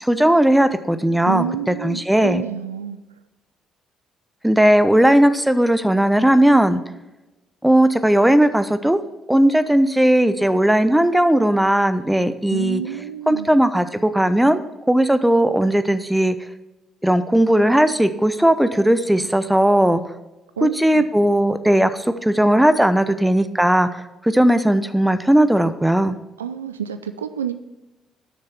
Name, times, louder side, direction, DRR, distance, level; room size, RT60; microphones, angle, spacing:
voice 1, 0.0-2.4 4.4-6.8 7.6-9.0 9.3-12.8 13.3-14.6 14.9-16.4 17.0-20.0 20.6-26.2, right 1 dB, 5° right, 11 dB, 0.8 m, -17 dB
voice 2, 1.2-3.0 12.5-13.5 20.6-21.1 26.4-27.5, right 8 dB, 80° right, 10 dB, 0.4 m, -29 dB
11.0 x 6.6 x 4.4 m, 1.0 s
figure-of-eight pair, 45°, 0 cm